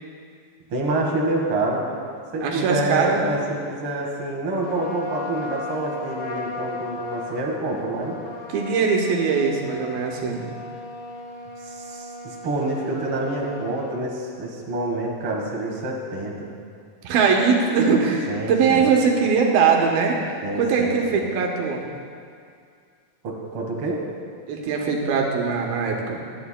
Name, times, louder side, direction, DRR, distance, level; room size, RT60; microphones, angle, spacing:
voice 1, 0.7-1.9 2.3-8.2 11.6-16.5 18.3-18.9 20.4-21.2 23.2-24.0, right 2 dB, 45° right, -2 dB, 2.2 m, -27 dB
voice 2, 2.4-3.2 8.5-10.5 17.0-20.2 20.6-21.8 24.5-26.2, right 5 dB, 85° right, 0 dB, 2.9 m, -21 dB
Trumpet, 4.6-14.0, left 2 dB, 65° left, 2.0 m, -36 dB
25.0 x 9.4 x 2.2 m, 2.2 s
omnidirectional pair, 4.1 m